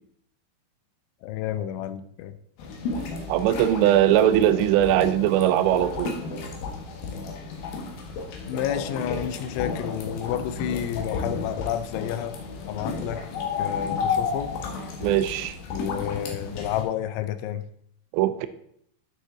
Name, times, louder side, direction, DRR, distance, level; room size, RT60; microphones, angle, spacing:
voice 1, 1.2-2.3 8.5-12.4 12.7-13.2 13.6-14.5 15.7-17.6, left 11 dB, 85° left, 12 dB, 3.0 m, -30 dB
sound 1, 2.6-16.8, left 4 dB, 65° left, 2.6 m, -32 dB
voice 2, 3.3-6.1 15.0-15.6 18.1-18.5, right 12 dB, 85° right, 10 dB, 2.6 m, -20 dB
9.3 x 6.6 x 3.7 m, 0.69 s
omnidirectional pair, 5.3 m